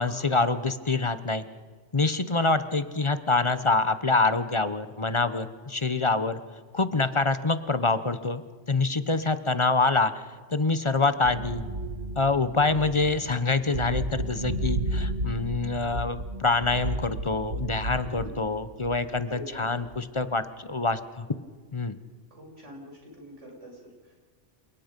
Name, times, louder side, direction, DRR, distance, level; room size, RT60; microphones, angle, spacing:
voice 1, 0.0-1.4 1.9-6.4 6.7-8.4 8.7-10.1 10.5-11.6 12.2-21.3 21.7-22.0, left 3 dB, 30° left, 13 dB, 0.8 m, -26 dB
sound 1, 11.2-19.2 19.8-20.2, right 1 dB, 90° right, 2.3 m, -33 dB
voice 2, 18.0-18.4 19.3-19.6 22.3-24.3, equal, 75° right, 0 dB, 6.1 m, -45 dB
28.0 x 18.5 x 5.3 m, 1.5 s
omnidirectional pair, 1.3 m